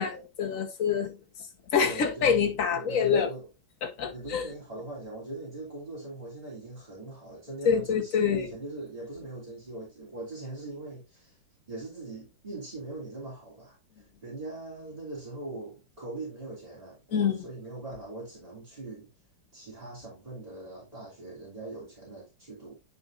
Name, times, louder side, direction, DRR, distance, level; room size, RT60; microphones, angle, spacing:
voice 1, 0.0-1.5 1.7-3.3 3.8-4.5 7.6-8.5 17.1-17.4, left 7 dB, 50° left, 1.4 m, -26 dB
voice 2, 1.8-3.5 4.1-11.4 11.7-19.1 19.5-22.7, right 2 dB, 20° right, 3.0 m, -41 dB
9.6 x 5.1 x 2.6 m
omnidirectional pair, 2.0 m